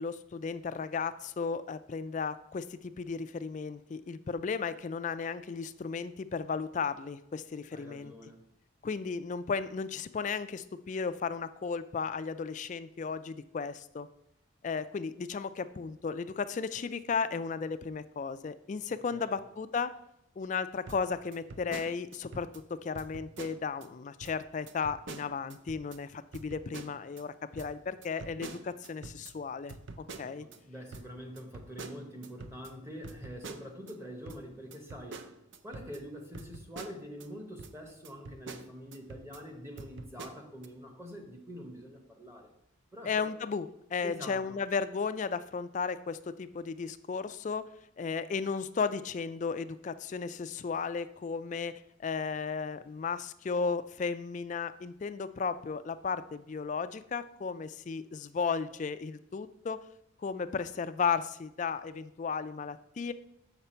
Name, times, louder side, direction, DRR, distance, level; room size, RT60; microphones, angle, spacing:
voice 1, 0.0-8.1 8.8-14.1 14.6-19.9 20.4-29.8 30.2-30.5 43.0-47.7 48.0-51.7 52.0-59.8 60.2-63.1, left 5 dB, 35° left, 12 dB, 0.3 m, -34 dB
voice 2, 7.7-8.4 18.9-19.4 30.4-35.3 35.6-42.5 42.9-43.3 44.0-44.6, equal, 15° right, 2 dB, 1.1 m, -45 dB
sound 1, 20.9-22.6 22.9-23.9 24.2-24.4 24.7-26.0 26.3-27.2 27.6-30.6 30.9-33.9 34.3-37.3 37.6-37.7 38.0-39.4 39.8-40.7, right 3 dB, 65° right, 0.6 m, -47 dB
6.9 x 5.8 x 4.4 m, 0.80 s
head